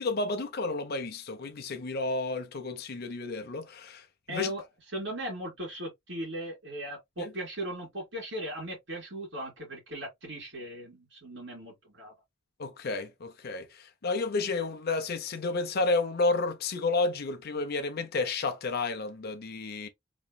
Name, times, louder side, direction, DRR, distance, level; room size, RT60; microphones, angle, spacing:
voice 1, 0.0-4.5 7.2-7.3 12.6-19.9, left 3 dB, 55° left, 0.6 m, -31 dB
voice 2, 4.3-4.6 4.9-12.1, right 1 dB, 65° right, 2.5 m, -38 dB
4.1 x 3.0 x 2.2 m
head